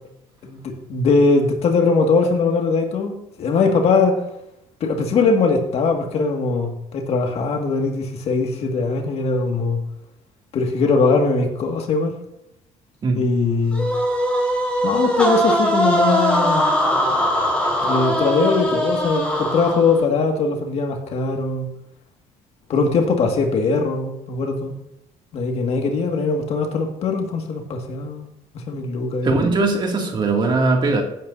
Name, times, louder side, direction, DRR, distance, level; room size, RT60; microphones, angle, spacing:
voice 1, 0.4-4.2 4.8-9.8 10.5-12.1 13.1-13.9 14.8-16.7 17.8-21.7 22.7-24.7 25.3-28.2 28.5-29.3, left 4 dB, 55° left, 3 dB, 2.0 m, -20 dB
sound 1, 13.7-20.0, equal, 10° left, 4.4 m, -21 dB
voice 2, 29.2-31.0, right 3 dB, 40° right, 1 dB, 2.5 m, -19 dB
16.0 x 9.4 x 2.7 m, 0.84 s
cardioid pair, 110°, 12 cm